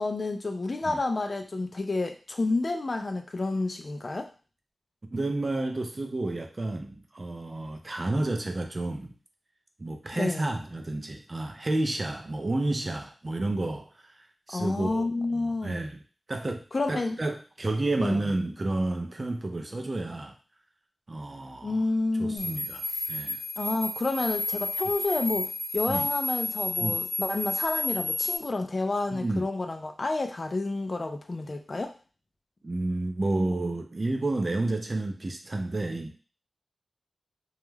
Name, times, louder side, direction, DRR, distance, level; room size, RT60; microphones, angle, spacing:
voice 1, 0.0-4.3 10.1-10.5 14.5-15.8 16.7-17.2 18.0-18.2 21.6-22.6 23.6-31.9, left 3 dB, 40° left, 5 dB, 0.3 m, -30 dB
voice 2, 5.1-9.1 9.8-14.1 14.5-16.0 16.3-20.3 21.1-21.8 22.2-23.4 25.9-26.1 26.8-27.0 29.1-29.4 32.6-36.2, right 2 dB, 35° right, 5 dB, 0.4 m, -31 dB
sound 1, 22.4-28.4, left 2 dB, 85° left, 0.6 m, -31 dB
2.3 x 2.1 x 3.1 m, 0.35 s
wide cardioid pair, 105°, 0 cm